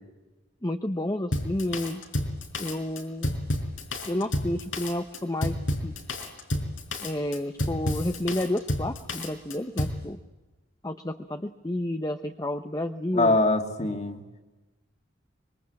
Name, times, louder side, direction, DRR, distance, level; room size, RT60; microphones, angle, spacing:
voice 1, 0.6-2.0 2.6-3.3 4.1-5.6 5.8-5.9 7.0-10.2 10.8-13.4, left 1 dB, 20° left, 7 dB, 0.8 m, -30 dB
Drum kit, 1.3-10.0, left 1 dB, 90° left, 4.9 m, -30 dB
voice 2, 13.1-14.2, left 2 dB, 35° left, 5 dB, 2.4 m, -23 dB
25.5 x 23.0 x 8.7 m, 1.2 s
head